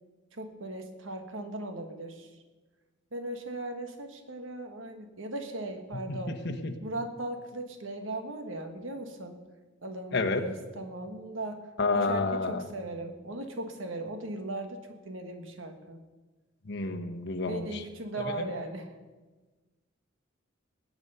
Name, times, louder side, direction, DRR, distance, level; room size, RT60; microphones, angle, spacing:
voice 1, 0.3-2.3 3.1-6.5 6.8-9.4 9.8-11.6 11.9-16.0 17.4-18.9, right 2 dB, 70° right, 6 dB, 1.5 m, -38 dB
voice 2, 6.1-6.7 10.1-10.4 11.8-12.6 16.7-17.8 18.3-18.5, left 3 dB, 60° left, 4 dB, 1.2 m, -30 dB
20.5 x 8.1 x 5.5 m, 1.3 s
head